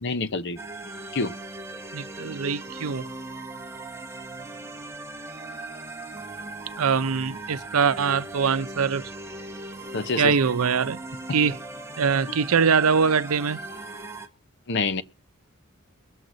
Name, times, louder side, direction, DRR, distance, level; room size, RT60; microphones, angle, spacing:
voice 1, 0.0-0.6 1.1-1.3 9.9-10.3 14.7-15.0, left 3 dB, 55° left, 0.9 m, -26 dB
sound 1, 0.6-14.3, right 2 dB, 15° right, 1.3 m, -39 dB
voice 2, 1.9-3.0 6.8-9.1 10.2-11.0 11.3-11.6 12.0-13.6, right 6 dB, 90° right, 0.6 m, -23 dB
22.0 x 7.8 x 3.9 m
head